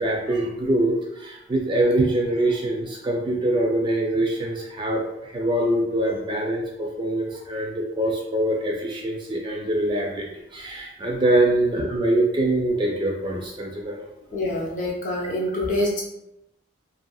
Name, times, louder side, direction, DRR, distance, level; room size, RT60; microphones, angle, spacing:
voice 1, 0.0-10.3 10.5-14.0, right 1 dB, 25° right, -1 dB, 0.3 m, -24 dB
voice 2, 14.3-16.0, left 1 dB, 40° left, -3 dB, 0.6 m, -25 dB
2.7 x 2.6 x 2.2 m, 0.86 s
head